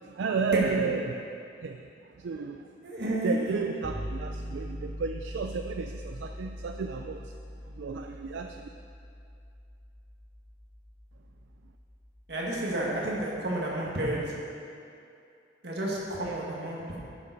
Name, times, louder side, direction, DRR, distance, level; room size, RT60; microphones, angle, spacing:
voice 1, 0.0-2.7 3.2-7.3 7.7-8.7, right 5 dB, 85° right, 5 dB, 0.4 m, -33 dB
voice 2, 2.8-3.4 12.3-14.2 15.6-17.0, right 1 dB, 65° right, -4 dB, 1.9 m, -31 dB
sound 1, 3.8-13.7, equal, 15° left, 2.1 m, -42 dB
10.5 x 6.9 x 4.0 m, 2.5 s
head